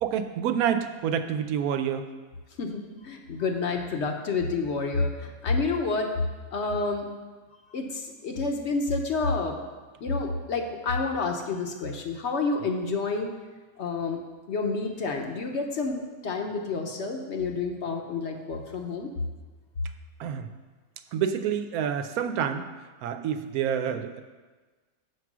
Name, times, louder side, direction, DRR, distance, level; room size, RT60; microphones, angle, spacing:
voice 1, 0.0-2.1 20.2-20.5 21.1-22.7 23.0-24.2, right 8 dB, 90° right, 9 dB, 1.1 m, -28 dB
voice 2, 2.6-6.1 6.5-7.1 7.7-9.6 10.0-13.3 13.8-14.2 14.5-19.1, left 3 dB, 60° left, 3 dB, 1.0 m, -29 dB
7.4 x 4.7 x 6.0 m, 1.3 s
omnidirectional pair, 1.5 m